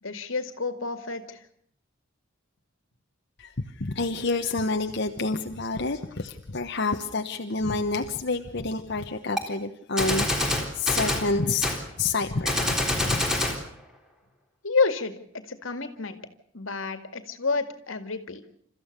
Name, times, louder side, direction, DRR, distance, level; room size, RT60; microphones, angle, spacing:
voice 1, 0.0-1.4 14.6-16.2 16.5-18.4, left 4 dB, 85° left, 9 dB, 2.2 m, -29 dB
voice 2, 3.4-13.2, left 3 dB, 60° left, 4 dB, 1.2 m, -29 dB
Gunshot gunfire, 9.4-9.5 10.0-11.3 11.6-11.8 12.4-13.6, left 1 dB, 5° right, 3.6 m, -25 dB
29.5 x 14.5 x 6.7 m, 0.67 s
head